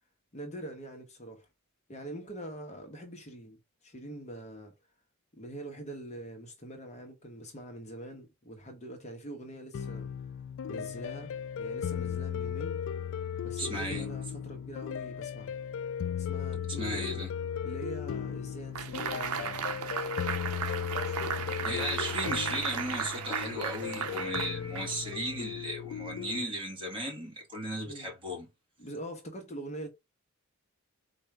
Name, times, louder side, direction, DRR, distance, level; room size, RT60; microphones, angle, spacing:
voice 1, 0.3-1.5 1.9-4.7 5.3-10.1 10.7-12.8 13.4-15.5 16.2-17.2 17.6-19.8 21.0-21.9 27.8-28.1 28.8-29.9, right 1 dB, 35° left, 1.0 m, -44 dB
sound 1, 9.7-26.4, left 8 dB, 60° left, 0.3 m, -36 dB
voice 2, 13.6-14.0 16.8-17.3 21.6-28.5, right 1 dB, 25° right, 1.9 m, -36 dB
sound 2, 18.8-25.2, right 7 dB, 90° right, 0.6 m, -35 dB
4.3 x 2.6 x 4.7 m
head